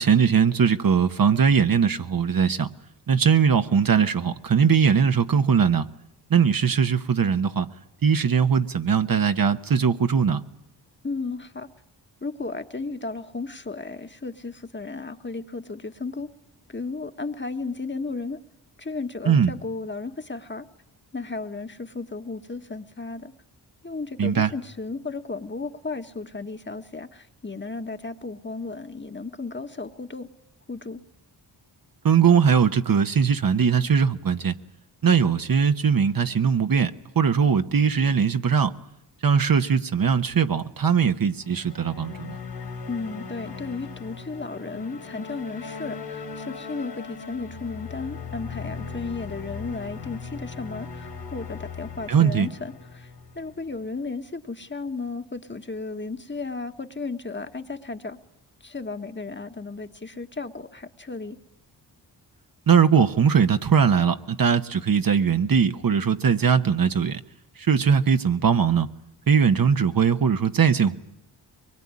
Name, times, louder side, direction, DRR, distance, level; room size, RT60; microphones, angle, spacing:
voice 1, 0.0-2.7 3.1-5.9 6.3-7.7 8.0-10.4 19.3-19.5 24.2-24.5 32.0-34.5 35.0-38.7 39.2-42.4 52.1-52.5 62.7-67.2 67.7-68.9 69.3-71.0, right 6 dB, 55° right, 1.2 m, -20 dB
voice 2, 11.0-11.7 12.2-16.3 16.7-18.4 18.8-20.6 21.1-23.3 23.8-30.3 30.7-31.0 42.9-53.1 53.3-58.2 58.6-61.4, left 3 dB, 25° left, 1.4 m, -34 dB
sound 1, 41.3-53.8, left 5 dB, 65° left, 3.3 m, -38 dB
23.0 x 21.5 x 9.7 m
cardioid pair, 60°, 43 cm